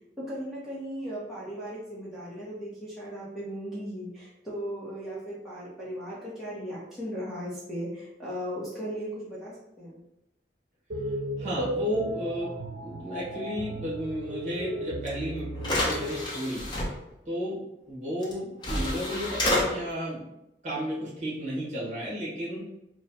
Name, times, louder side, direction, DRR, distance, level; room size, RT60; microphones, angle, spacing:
voice 1, 0.2-10.0, equal, ahead, -10 dB, 0.9 m, -37 dB
sound 1, 10.9-16.2, right 1 dB, 80° right, 0.6 m, -35 dB
voice 2, 11.4-12.5 12.8-16.6 17.3-20.3 20.6-22.6, equal, 40° right, -6 dB, 1.3 m, -33 dB
sound 2, 15.1-15.2 15.6-16.9 18.2-18.3 18.6-19.6, left 1 dB, 25° left, 0.7 m, -28 dB
3.1 x 2.3 x 4.1 m, 0.87 s
head